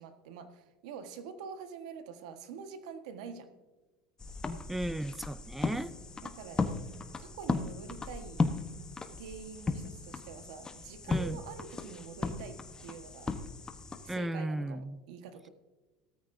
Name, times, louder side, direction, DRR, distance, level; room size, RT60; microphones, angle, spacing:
voice 1, 0.0-3.5 6.2-6.7 7.2-8.4 9.1-13.3 14.0-15.5, right 6 dB, 80° right, 8 dB, 1.4 m, -46 dB
sound 1, 4.2-14.2, left 3 dB, 20° left, 1.0 m, -36 dB
voice 2, 4.7-5.9 11.1-11.4 14.1-15.0, right 1 dB, 5° right, 17 dB, 0.4 m, -35 dB
17.0 x 13.5 x 2.7 m, 1.2 s
supercardioid pair, 100°, 4 cm